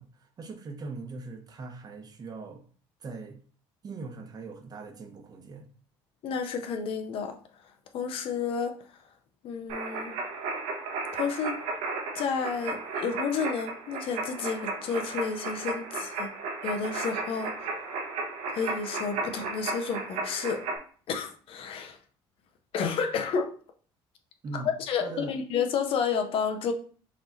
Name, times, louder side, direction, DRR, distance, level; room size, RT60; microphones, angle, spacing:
voice 1, 0.0-2.6 3.0-3.4 3.8-5.7 24.4-24.7 25.0-25.3, right 3 dB, 35° right, 0.9 m, -40 dB
voice 2, 6.2-9.1 9.4-10.2 11.1-11.6 12.1-16.3 16.6-17.7 18.5-20.7 21.1-22.0 22.7-23.5 24.5-26.7, left 6 dB, 55° left, 0.6 m, -31 dB
sound 1, 9.7-20.8, right 3 dB, 85° right, 1.2 m, -34 dB
5.9 x 3.1 x 2.7 m
cardioid pair, 110°, 11 cm